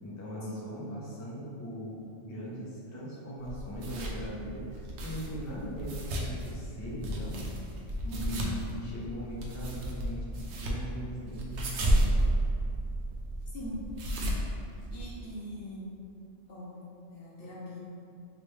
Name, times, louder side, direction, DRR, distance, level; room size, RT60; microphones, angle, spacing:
voice 1, 0.0-7.4 8.1-12.2, equal, 25° left, -7 dB, 0.4 m, -40 dB
sound 1, 3.4-15.3, right 1 dB, 65° right, 0.8 m, -33 dB
voice 2, 8.0-8.6 13.5-13.8 14.1-14.3 14.9-15.9 16.5-16.8 17.1-17.8, left 1 dB, 55° left, -6 dB, 0.9 m, -41 dB
3.2 x 3.0 x 3.1 m, 2.6 s
omnidirectional pair, 1.3 m